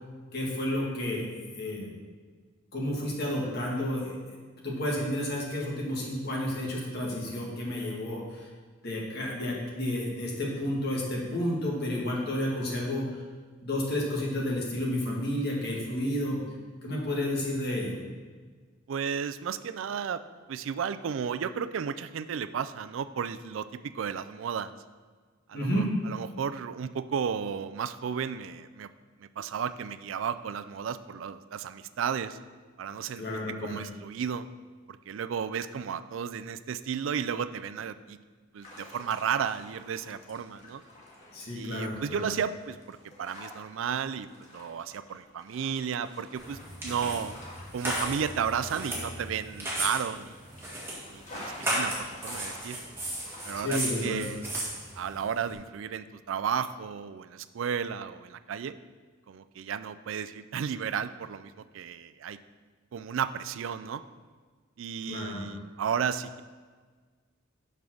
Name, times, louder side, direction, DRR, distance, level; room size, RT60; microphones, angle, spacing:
voice 1, 0.3-1.3 1.6-1.9 2.7-4.2 4.6-8.5 8.8-13.0 13.6-16.4 16.8-18.0 25.5-25.9 33.2-33.8 41.3-42.3 53.5-54.3 65.1-65.5, left 1 dB, 55° left, -3 dB, 1.9 m, -31 dB
voice 2, 18.9-20.2 20.5-24.7 25.5-28.9 29.2-32.4 32.8-33.2 33.6-34.5 35.1-38.2 38.5-40.8 41.6-44.3 44.5-47.3 47.7-50.4 51.1-52.8 53.4-54.4 55.0-58.8 59.3-62.4 62.9-64.0 64.8-66.4, right 7 dB, 70° right, 13 dB, 0.4 m, -33 dB
sound 1, 38.6-54.0, left 1 dB, 40° left, 1.7 m, -50 dB
sound 2, 46.4-55.5, right 1 dB, 10° right, 1.9 m, -35 dB
6.9 x 5.4 x 6.2 m, 1.5 s
head